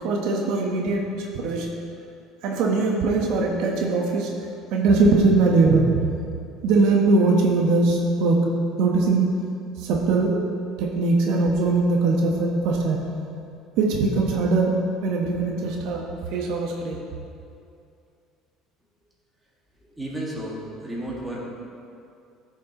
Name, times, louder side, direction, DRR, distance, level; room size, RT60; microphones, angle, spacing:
voice 1, 0.0-1.7 2.4-4.4 4.7-5.9 6.6-8.5 8.8-9.3 9.8-10.4 10.8-13.0 13.8-17.0, right 3 dB, 70° right, 0 dB, 1.0 m, -21 dB
voice 2, 19.9-21.4, right 1 dB, 10° right, -5 dB, 1.9 m, -32 dB
14.0 x 6.2 x 3.0 m, 2.5 s
cardioid pair, 145°, 0 cm